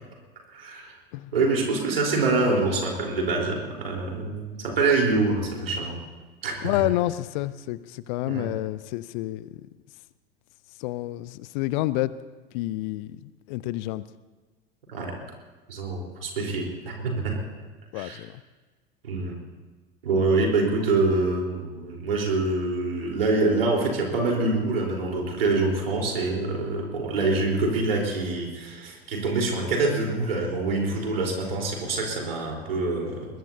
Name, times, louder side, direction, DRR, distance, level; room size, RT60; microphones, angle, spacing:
voice 1, 0.5-0.9 1.3-6.0 6.4-6.8 8.2-8.5 14.9-15.2 15.7-17.3 17.9-18.2 19.0-19.3 20.0-33.3, right 3 dB, 75° right, 0 dB, 4.1 m, -25 dB
voice 2, 6.6-9.5 10.8-12.1 12.5-14.0 17.9-18.3, left 16 dB, 50° left, 17 dB, 0.6 m, -29 dB
22.0 x 20.5 x 2.8 m, 1.3 s
figure-of-eight pair, 75°, 30 cm